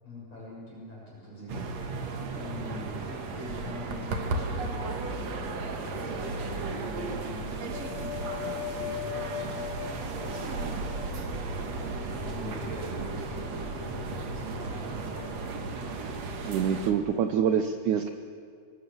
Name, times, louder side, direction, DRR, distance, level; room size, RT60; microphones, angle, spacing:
voice 1, 0.0-1.6 2.3-3.0 3.3-8.1 8.7-10.9 12.2-14.9, left 1 dB, 40° left, -5 dB, 8.0 m, -43 dB
sound 1, 1.5-16.9, right 3 dB, 50° right, 2.4 m, -35 dB
sound 2, 5.9-7.1 7.4-17.3, left 11 dB, 75° left, 2.3 m, -42 dB
voice 2, 16.5-18.1, right 8 dB, 90° right, 8 dB, 1.7 m, -26 dB
25.0 x 23.5 x 7.1 m, 2.3 s
omnidirectional pair, 4.7 m